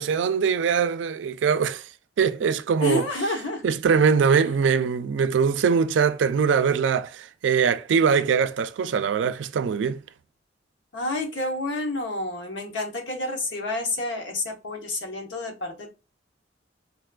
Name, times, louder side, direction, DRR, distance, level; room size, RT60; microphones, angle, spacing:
voice 1, 0.0-1.9 2.2-3.1 3.6-10.0, right 6 dB, 85° right, 0.3 m, -22 dB
voice 2, 2.8-3.6 10.9-15.9, left 2 dB, 90° left, 1.0 m, -29 dB
3.9 x 2.2 x 2.3 m
head